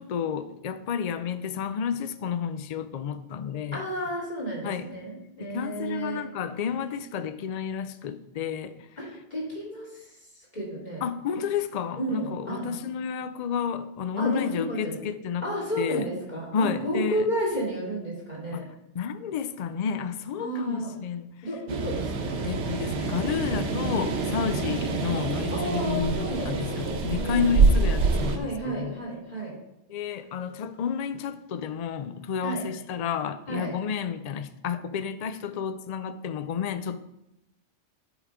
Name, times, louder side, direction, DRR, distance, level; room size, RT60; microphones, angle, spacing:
voice 1, 0.0-3.8 4.6-4.9 5.5-8.8 11.0-15.5 15.8-16.1 16.5-17.2 18.5-18.7 18.9-21.4 22.4-28.9 29.9-37.0, left 7 dB, 75° left, 11 dB, 0.3 m, -31 dB
voice 2, 3.7-6.2 9.0-11.0 12.0-12.9 14.2-15.0 15.4-18.6 20.4-20.9 21.4-22.4 24.6-24.8 25.5-27.6 28.3-29.5 32.4-32.6 33.5-33.7, right 1 dB, 35° left, -5 dB, 2.7 m, -32 dB
sound 1, 21.7-28.4, right 4 dB, 75° right, 1.1 m, -26 dB
11.0 x 3.8 x 4.8 m, 0.88 s
omnidirectional pair, 1.2 m